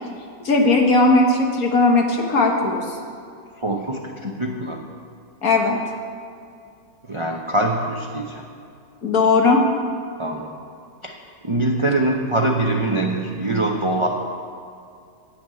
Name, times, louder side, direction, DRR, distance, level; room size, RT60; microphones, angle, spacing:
voice 1, 0.4-3.0 4.2-4.3 5.4-5.8 9.0-9.6 13.5-13.6, left 3 dB, 55° left, 2 dB, 1.7 m, -17 dB
voice 2, 3.6-4.8 7.1-8.4 10.2-10.5 11.0-11.1 11.4-14.1, right 2 dB, 40° right, 1 dB, 0.4 m, -23 dB
9.5 x 8.1 x 8.4 m, 2.4 s
omnidirectional pair, 1.9 m